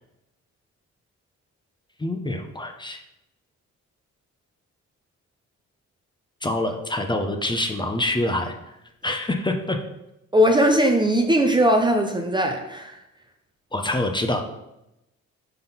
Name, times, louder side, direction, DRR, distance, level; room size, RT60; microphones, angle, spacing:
voice 1, 2.0-3.0 6.4-8.5 9.0-9.8 13.7-14.4, left 1 dB, 15° left, 5 dB, 0.8 m, -25 dB
voice 2, 10.3-13.0, equal, 15° right, 3 dB, 0.7 m, -19 dB
5.7 x 3.7 x 5.9 m, 0.88 s
cardioid pair, 90°, 30 cm